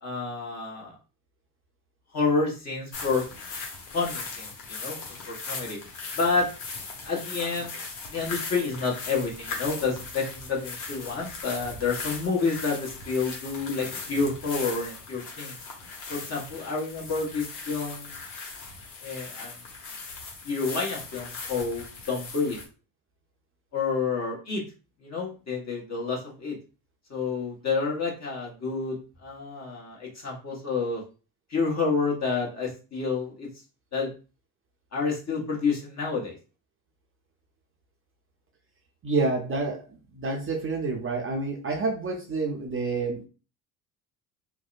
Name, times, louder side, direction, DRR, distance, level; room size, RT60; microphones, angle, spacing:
voice 1, 0.0-0.9 2.1-3.2 3.9-5.0 5.3-5.8 6.1-6.5 7.0-7.7 8.1-15.6 16.1-18.2 19.0-19.5 20.4-22.6 23.7-24.6 25.0-26.6 27.1-31.0 31.5-33.5 33.9-34.1 34.9-36.3, left 4 dB, 35° left, -2 dB, 1.2 m, -29 dB
sound 1, 2.9-22.6, left 4 dB, 80° left, 0.9 m, -39 dB
voice 2, 39.0-39.8 40.1-43.2, right 3 dB, 30° right, 1 dB, 0.6 m, -28 dB
2.6 x 2.1 x 2.4 m, 0.33 s
hypercardioid pair, 70°, 44 cm